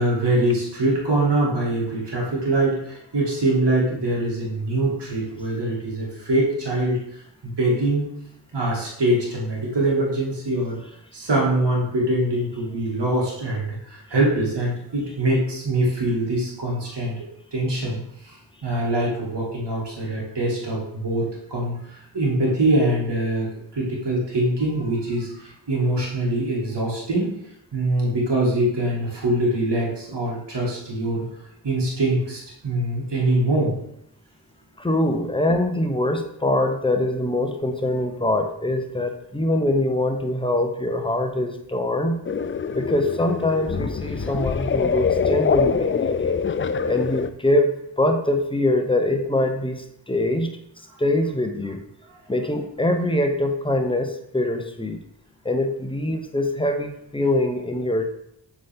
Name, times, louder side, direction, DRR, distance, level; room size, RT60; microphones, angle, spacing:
voice 1, 0.0-8.0 8.5-10.8 11.1-17.2 17.5-18.0 18.3-18.4 18.6-21.3 21.5-23.5 23.7-27.3 27.7-31.2 31.6-33.7 35.5-35.6 44.2-44.3, right 1 dB, 70° right, -4 dB, 2.4 m, -23 dB
voice 2, 34.8-42.2 42.7-46.3 46.9-50.5 51.0-51.8 52.3-55.0 55.4-58.1, left 1 dB, 10° left, 5 dB, 0.9 m, -23 dB
sound 1, 42.3-47.3, left 6 dB, 30° left, 0.4 m, -24 dB
7.4 x 4.4 x 3.6 m, 0.75 s
cardioid pair, 50°, 43 cm